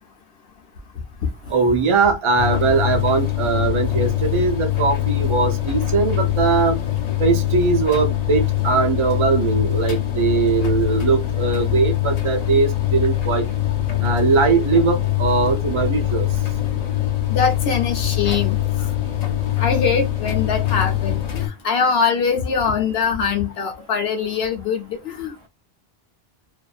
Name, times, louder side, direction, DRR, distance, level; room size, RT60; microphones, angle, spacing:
voice 1, 1.5-6.8 7.2-13.4 14.0-16.3, right 4 dB, 40° right, 0.4 m, -20 dB
sound 1, 2.4-21.5, left 13 dB, 50° left, 0.6 m, -23 dB
voice 2, 17.3-18.6 19.6-25.5, left 6 dB, 85° left, 0.9 m, -22 dB
2.5 x 2.5 x 2.3 m
omnidirectional pair, 1.0 m